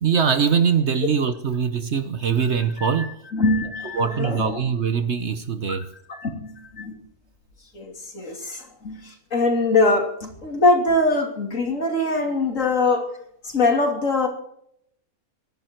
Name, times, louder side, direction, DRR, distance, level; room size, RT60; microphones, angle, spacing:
voice 1, 0.0-3.2 3.9-5.9, right 6 dB, 50° right, 1.1 m, -22 dB
voice 2, 3.3-4.6 6.1-7.0 7.7-13.1 13.4-14.3, left 2 dB, 55° left, 3.2 m, -23 dB
25.0 x 11.0 x 4.5 m
omnidirectional pair, 1.6 m